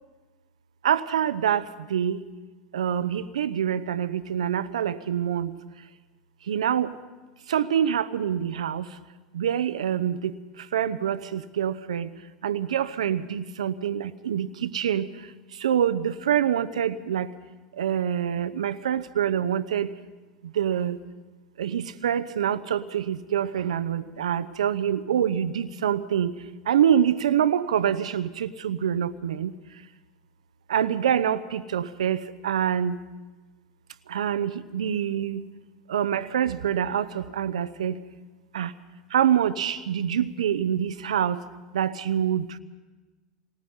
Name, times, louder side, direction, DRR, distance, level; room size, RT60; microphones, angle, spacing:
voice 1, 0.8-1.6 1.9-2.2 2.7-5.5 6.5-6.9 7.5-8.8 9.3-10.3 10.7-12.1 12.4-15.1 15.6-17.3 17.8-19.9 20.6-21.0 21.6-26.3 26.7-29.5 30.7-33.0 34.1-35.4 35.9-37.9 38.5-38.7 39.1-41.4 41.7-42.5, right 9 dB, 80° right, 13 dB, 0.8 m, -25 dB
27.0 x 19.0 x 5.6 m, 1.2 s
hypercardioid pair, 90°, 3 cm